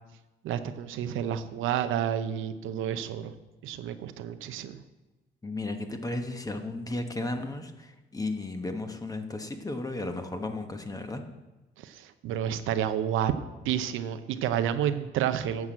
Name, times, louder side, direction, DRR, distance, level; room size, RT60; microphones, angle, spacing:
voice 1, 0.4-3.3 3.6-4.8 11.8-13.3 13.6-15.7, right 10 dB, 85° right, 10 dB, 0.7 m, -30 dB
voice 2, 5.4-11.2, left 2 dB, 20° left, 6 dB, 1.2 m, -34 dB
9.4 x 6.1 x 7.5 m, 1.1 s
cardioid pair, 90°, 20 cm